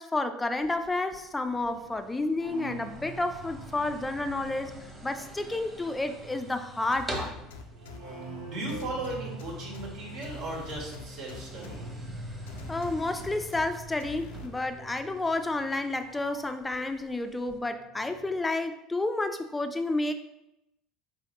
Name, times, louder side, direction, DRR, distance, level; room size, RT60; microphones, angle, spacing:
voice 1, 0.0-4.7 5.0-7.3 12.7-20.1, left 2 dB, 15° left, 8 dB, 0.4 m, -30 dB
sound 1, 0.6-17.6, right 1 dB, 15° right, 1.2 m, -47 dB
sound 2, 1.5-17.3 17.5-18.4, right 1 dB, 80° right, 1.0 m, -45 dB
sound 3, 6.9-8.0 8.7-9.9 10.2-11.8 12.5-13.7 14.0-14.5, left 5 dB, 85° left, 0.5 m, -44 dB
voice 2, 8.5-11.8, right 2 dB, 65° right, -2 dB, 1.6 m, -37 dB
4.6 x 3.3 x 3.1 m, 0.87 s
hypercardioid pair, 90°, 0 cm